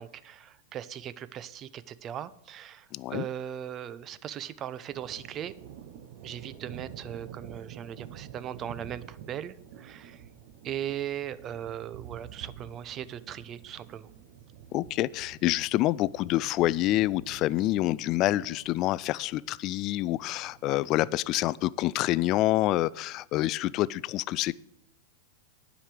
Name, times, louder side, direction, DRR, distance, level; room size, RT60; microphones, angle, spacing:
voice 1, 0.0-5.5 6.2-10.2 10.6-14.1, right 10 dB, 35° right, 16 dB, 0.6 m, -38 dB
voice 2, 2.9-3.3 14.7-24.5, left 16 dB, 40° left, 21 dB, 0.3 m, -27 dB
sound 1, 4.9-21.0, right 9 dB, 55° right, 0.9 m, -48 dB
9.9 x 5.1 x 7.6 m, 0.77 s
hypercardioid pair, 105°, 0 cm